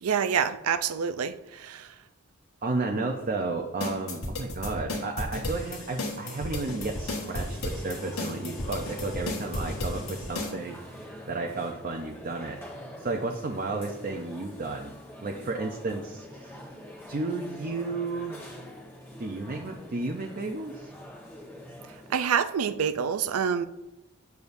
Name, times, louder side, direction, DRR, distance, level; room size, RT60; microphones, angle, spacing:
voice 1, 0.0-2.0 22.1-23.7, right 7 dB, 90° right, 0.4 m, -27 dB
voice 2, 2.6-12.6 13.0-14.9 15.2-16.6 17.1-18.5 19.2-20.9, right 3 dB, 40° right, 0.6 m, -33 dB
sound 1, 3.8-10.5, left 1 dB, 80° left, 1.6 m, -34 dB
Bowed string instrument, 6.7-11.9, equal, 60° left, 1.4 m, -44 dB
sound 2, 6.8-22.2, equal, 10° left, 1.2 m, -45 dB
8.0 x 7.0 x 2.6 m
head